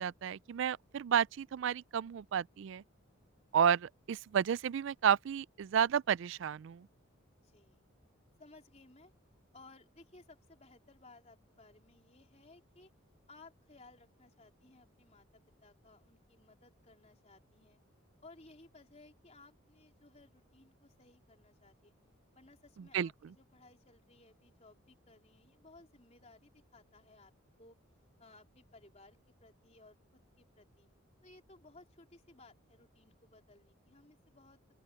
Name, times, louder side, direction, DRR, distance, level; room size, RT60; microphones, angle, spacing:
voice 1, 0.0-2.8 3.5-6.9 22.9-23.1, right 8 dB, 60° right, 0.3 m, -31 dB
voice 2, 7.4-7.8 8.4-9.1 9.5-12.9 13.3-17.8 18.2-22.0 22.3-27.3 27.6-27.8 28.2-30.9 31.2-34.6, left 2 dB, 30° left, 4.0 m, -60 dB
open air
head